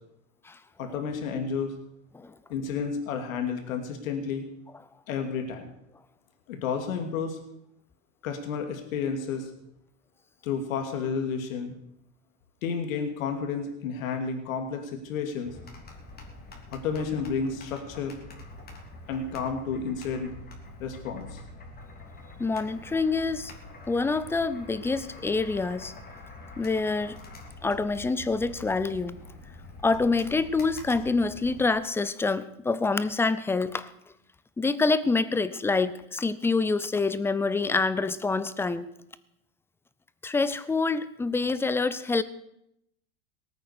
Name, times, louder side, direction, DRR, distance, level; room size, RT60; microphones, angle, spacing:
voice 1, 0.8-1.7 2.5-4.4 5.1-5.7 6.5-7.4 8.2-9.5 10.4-11.7 12.6-15.5 16.7-18.2 19.1-20.3 20.8-21.4, left 5 dB, 75° left, 5 dB, 2.8 m, -31 dB
sound 1, 15.4-31.7, left 2 dB, 25° left, 3.2 m, -45 dB
voice 2, 22.4-23.5 23.9-25.9 26.6-27.2 27.6-29.2 29.8-33.9 34.6-38.9 40.2-42.2, left 3 dB, 5° left, 15 dB, 0.5 m, -26 dB
19.0 x 9.1 x 6.7 m, 0.79 s
supercardioid pair, 130°, 40 cm